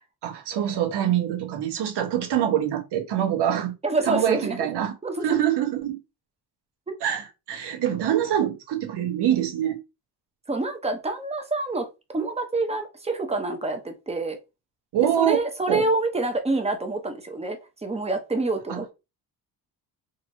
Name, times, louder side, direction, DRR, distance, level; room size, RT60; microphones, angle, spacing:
voice 1, 0.2-3.8 4.1-4.9 5.2-6.0 7.0-9.8 14.9-15.4 15.7-15.9 18.7-18.8, right 10 dB, 75° right, 1.0 m, -25 dB
voice 2, 3.8-4.7 5.0-5.4 6.9-7.0 10.5-14.4 15.2-18.9, right 2 dB, 15° right, 0.7 m, -27 dB
3.9 x 2.9 x 2.6 m
cardioid pair, 130°, 40 cm